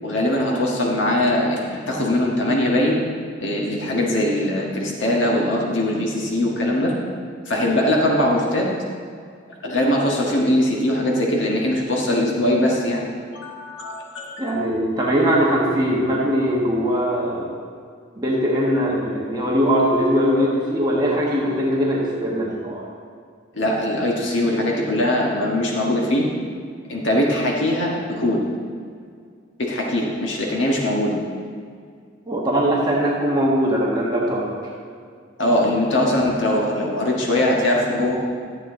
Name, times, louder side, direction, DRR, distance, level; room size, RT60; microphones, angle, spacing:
voice 1, 0.0-3.0 3.4-6.9 7.5-8.7 9.6-13.0 13.3-14.5 23.5-26.3 26.9-28.4 29.6-31.2 35.4-38.2, left 1 dB, 75° left, -2 dB, 1.6 m, -21 dB
voice 2, 14.4-17.5 18.1-22.9 32.3-34.5, equal, 20° right, -4 dB, 1.4 m, -21 dB
12.5 x 7.6 x 3.8 m, 2.1 s
head